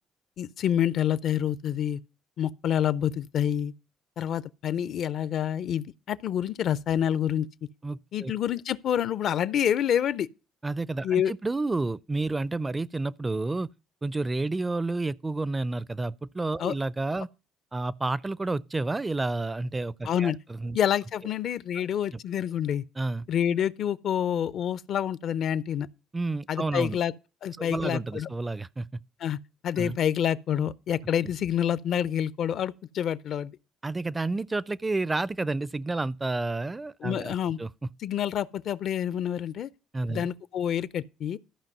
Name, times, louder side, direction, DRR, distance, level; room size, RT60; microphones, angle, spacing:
voice 1, 0.4-2.0 2.4-3.7 4.2-7.5 8.1-10.3 11.0-11.3 16.6-16.7 20.0-20.4 20.7-22.8 23.3-25.9 26.5-27.1 27.4-28.3 29.2-29.4 29.6-33.5 37.0-37.6 38.0-39.7 40.1-41.4, left 9 dB, 65° left, 0.5 m, -27 dB
voice 2, 7.8-8.3 10.6-13.7 14.0-17.3 17.7-20.8 21.8-21.9 23.0-23.3 26.1-27.0 27.6-29.0 29.8-30.0 33.8-37.7 39.9-40.3, right 2 dB, 20° right, 0.4 m, -30 dB
13.5 x 5.4 x 5.3 m
supercardioid pair, 65°, 0 cm